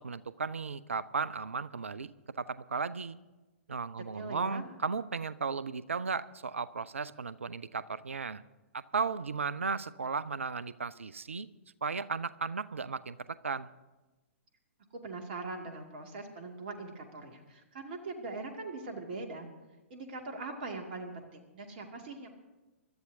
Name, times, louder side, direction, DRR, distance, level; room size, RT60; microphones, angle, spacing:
voice 1, 0.0-3.2 3.7-8.4 8.7-11.5 11.8-13.7, right 5 dB, 70° right, 18 dB, 0.6 m, -35 dB
voice 2, 4.1-4.6 15.0-19.5 19.9-22.3, right 3 dB, 45° right, 3 dB, 2.2 m, -41 dB
25.5 x 12.5 x 2.7 m, 1.1 s
figure-of-eight pair, 115°, 7 cm